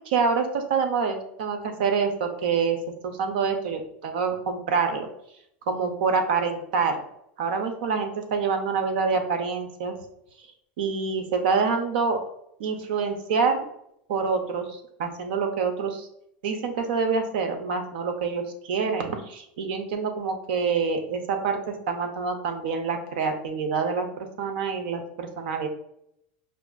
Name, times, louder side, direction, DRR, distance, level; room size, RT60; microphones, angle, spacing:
voice 1, 0.1-2.8 3.0-5.1 5.7-7.0 7.4-9.9 10.8-12.2 12.6-13.6 14.1-16.1 16.4-25.7, right 5 dB, 85° right, 6 dB, 0.6 m, -26 dB
4.7 x 2.5 x 2.3 m, 0.74 s
supercardioid pair, 135°, 5 cm